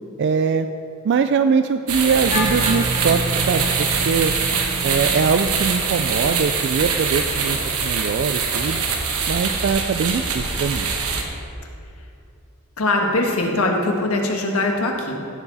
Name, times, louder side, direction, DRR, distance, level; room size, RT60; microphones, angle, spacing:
voice 1, 0.2-0.7 1.0-4.3 4.8-8.8 9.3-10.9, right 5 dB, 50° right, 9 dB, 0.3 m, -22 dB
sound 1, 1.9-11.2, right 5 dB, 70° right, 1.2 m, -23 dB
sound 2, 2.1-7.4, right 3 dB, 35° left, 2.0 m, -32 dB
Wind instrument woodwind instrument, 2.3-6.5, left 1 dB, 50° left, 2.8 m, -32 dB
voice 2, 12.8-15.2, left 2 dB, 70° left, 1 dB, 1.4 m, -21 dB
15.0 x 7.0 x 4.1 m, 2.6 s
head